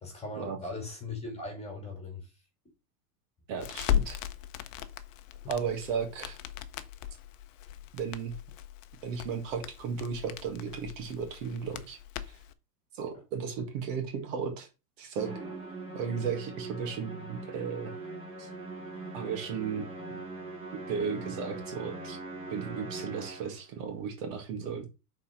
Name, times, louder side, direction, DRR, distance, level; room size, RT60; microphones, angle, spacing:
voice 1, 0.0-2.3 7.7-7.8, left 2 dB, 15° left, 2.3 m, -39 dB
voice 2, 3.5-4.2 5.5-6.4 7.9-8.3 9.0-12.0 12.3-12.4 13.0-14.7 15.0-15.3 15.9-17.9 18.4-18.5 19.1-20.2 20.9-22.2 22.5-24.9, right 6 dB, 55° right, 1.9 m, -35 dB
Crackle, 3.6-12.5, left 11 dB, 55° left, 0.8 m, -37 dB
Musical instrument, 15.2-23.7, right 2 dB, 10° right, 1.9 m, -42 dB
6.2 x 4.2 x 4.4 m
supercardioid pair, 150°, 47 cm